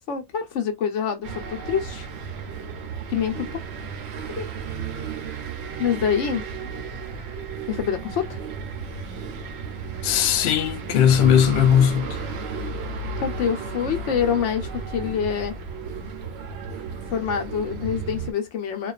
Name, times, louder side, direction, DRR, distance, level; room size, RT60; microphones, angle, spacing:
voice 1, 0.1-2.1 3.1-3.6 4.4-4.5 5.8-6.4 7.7-8.4 13.2-15.5 17.1-18.9, left 8 dB, 60° left, 0.9 m, -26 dB
sound 1, 1.2-18.3, right 4 dB, 65° right, 0.7 m, -33 dB
voice 2, 10.0-12.2, left 9 dB, 90° left, 0.5 m, -18 dB
2.4 x 2.3 x 2.3 m
omnidirectional pair, 1.6 m